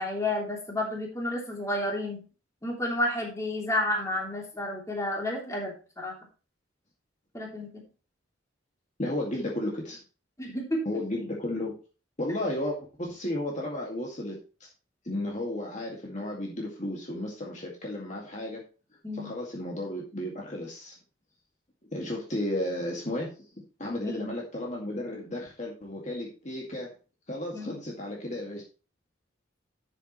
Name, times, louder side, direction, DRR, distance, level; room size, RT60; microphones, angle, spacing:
voice 1, 0.0-2.2 2.6-6.1 7.3-7.8 10.4-10.8 19.0-19.3 24.0-24.3 27.5-27.8, left 1 dB, 15° left, -1 dB, 3.1 m, -31 dB
voice 2, 9.0-10.0 10.9-11.7 12.2-14.7 15.0-18.6 19.1-21.0 21.9-23.4 23.8-26.9 27.3-28.6, left 1 dB, 40° left, -2 dB, 2.1 m, -33 dB
12.0 x 7.3 x 3.1 m, 0.34 s
head